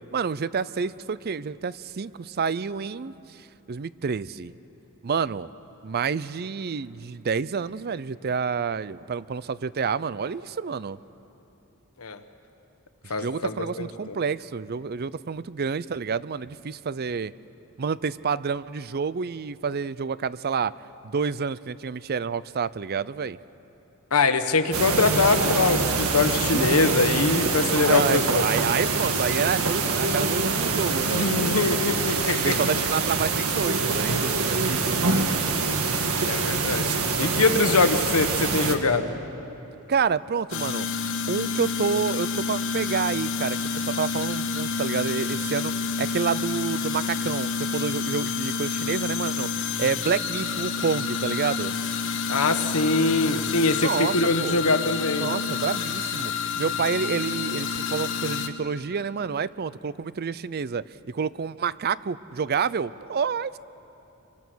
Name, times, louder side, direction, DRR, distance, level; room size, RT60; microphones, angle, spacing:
voice 1, 0.1-4.5 5.0-5.5 5.8-11.0 13.0-17.3 17.8-20.7 21.0-23.4 26.5-26.8 27.8-31.4 32.4-35.0 39.9-40.9 41.3-49.5 49.8-51.7 53.8-54.6 55.2-56.3 56.6-63.6, right 6 dB, 45° right, 18 dB, 0.5 m, -28 dB
voice 2, 13.1-14.1 24.1-28.4 31.1-32.6 36.2-39.1 52.3-55.3, left 3 dB, 85° left, 8 dB, 1.3 m, -23 dB
sound 1, 24.7-38.8, right 4 dB, 85° right, 1.7 m, -25 dB
sound 2, 40.5-58.5, left 5 dB, 60° left, 1.2 m, -29 dB
25.0 x 23.5 x 6.2 m, 3.0 s
head